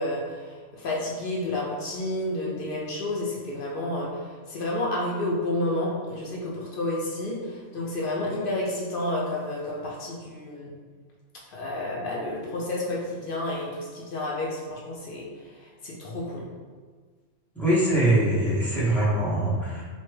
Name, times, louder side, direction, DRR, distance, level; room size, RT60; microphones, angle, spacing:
voice 1, 0.0-10.7 11.5-16.5, left 1 dB, 60° left, -3 dB, 0.6 m, -30 dB
voice 2, 17.5-19.8, right 1 dB, ahead, -9 dB, 0.4 m, -23 dB
3.0 x 2.1 x 3.1 m, 1.5 s
omnidirectional pair, 1.3 m